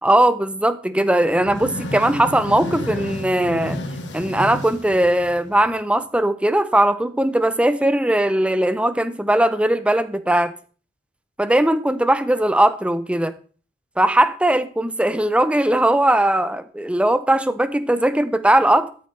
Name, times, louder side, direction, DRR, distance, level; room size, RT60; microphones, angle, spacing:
voice 1, 0.0-3.8 4.1-10.5 11.4-13.3 14.0-18.9, right 1 dB, 5° right, 12 dB, 0.6 m, -19 dB
sound 1, 1.2-5.8, left 1 dB, 80° left, 1.5 m, -31 dB
12.5 x 7.8 x 3.2 m, 0.40 s
head